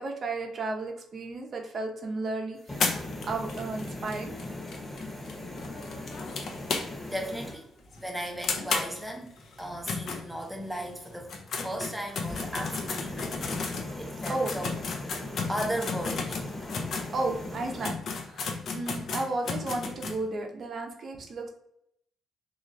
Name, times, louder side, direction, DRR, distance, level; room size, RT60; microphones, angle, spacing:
voice 1, 0.0-4.3 14.3-14.6 17.1-21.5, right 2 dB, 50° right, 2 dB, 0.6 m, -33 dB
sound 1, 2.6-7.6 12.1-17.9, left 1 dB, 20° left, 1.0 m, -39 dB
sound 2, 2.8-7.2 7.5-7.6 7.9-8.0 8.4-10.8 11.2-17.1 17.5-17.6 17.8-20.2, left 4 dB, 60° left, 0.5 m, -33 dB
voice 2, 6.8-11.3 11.6-15.1 15.5-16.4, right 1 dB, 5° right, 1 dB, 0.6 m, -36 dB
2.9 x 2.4 x 2.5 m, 0.74 s
cardioid pair, 90°, 0 cm